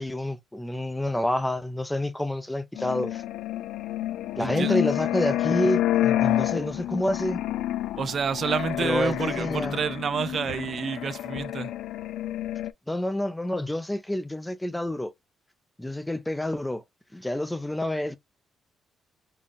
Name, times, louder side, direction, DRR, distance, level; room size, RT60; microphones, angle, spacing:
voice 1, 0.0-3.2 4.4-7.4 8.8-9.8 12.9-15.1 15.8-16.8 17.1-18.2, left 1 dB, 10° left, 0.6 m, -28 dB
sound 1, 2.8-12.7, left 13 dB, 85° left, 0.3 m, -29 dB
voice 2, 4.4-4.8 8.0-11.7, right 6 dB, 50° right, 0.5 m, -29 dB
3.9 x 2.3 x 3.5 m
cardioid pair, 90°, 0 cm